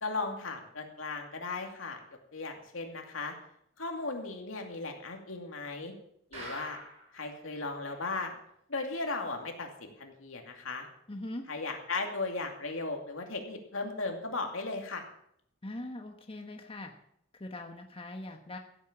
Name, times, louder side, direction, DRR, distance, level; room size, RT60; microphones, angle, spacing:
voice 1, 0.0-2.0 2.3-3.3 3.8-5.9 6.3-6.8 7.1-8.3 8.7-10.9 11.5-15.1, left 3 dB, 80° left, 3 dB, 2.6 m, -36 dB
sound 1, 6.3-7.2 7.6-7.7 7.9-8.0 8.5-8.6, right 1 dB, 35° right, 6.9 m, -43 dB
voice 2, 11.1-11.5 15.6-16.9 17.3-18.6, left 1 dB, 30° left, 4 dB, 1.2 m, -41 dB
15.0 x 8.3 x 7.3 m, 0.72 s
head